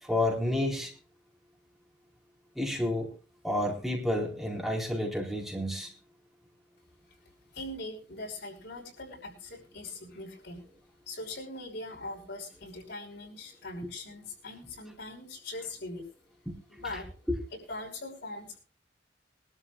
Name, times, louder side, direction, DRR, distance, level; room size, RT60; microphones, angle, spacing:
voice 1, 0.0-0.9 2.5-3.1 3.4-5.9, left 1 dB, ahead, -3 dB, 4.4 m, -30 dB
voice 2, 7.5-10.6 11.1-16.1 16.7-17.1 17.7-18.6, left 2 dB, 75° left, 1 dB, 5.9 m, -41 dB
23.5 x 13.0 x 2.4 m, 0.35 s
head